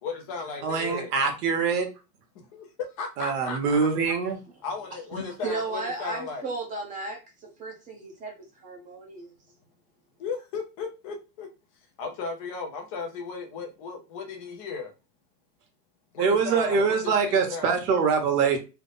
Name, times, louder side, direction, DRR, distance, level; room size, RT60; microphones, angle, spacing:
voice 1, 0.0-1.1 2.5-4.2 4.6-6.5 10.2-11.5 12.0-14.9 16.1-17.7, left 4 dB, 25° left, 3 dB, 0.4 m, -35 dB
voice 2, 0.6-1.9 3.2-4.4 16.2-18.6, right 5 dB, 75° right, 4 dB, 1.3 m, -24 dB
voice 3, 5.1-7.2 7.6-8.3 8.6-9.3, right 3 dB, 15° right, 0 dB, 0.7 m, -34 dB
3.3 x 2.0 x 3.9 m, 0.29 s
supercardioid pair, 155°, 48 cm